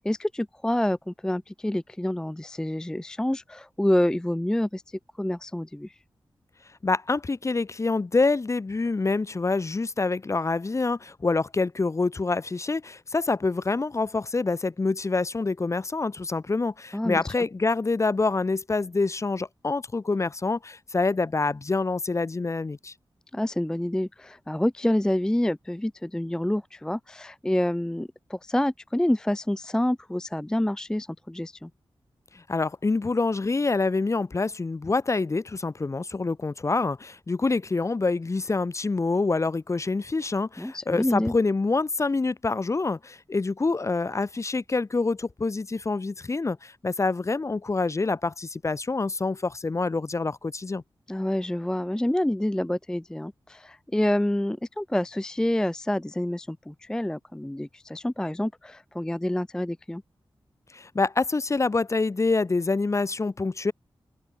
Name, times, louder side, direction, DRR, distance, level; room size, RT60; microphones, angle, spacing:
voice 1, 0.0-4.8 5.2-5.9 16.9-17.4 23.3-31.7 40.6-41.3 51.1-60.0, left 1 dB, 5° left, 0.4 m, -27 dB
voice 2, 6.8-22.9 32.3-50.8 60.7-63.7, left 3 dB, 35° left, 0.8 m, -26 dB
open air
wide cardioid pair, 105°, 9 cm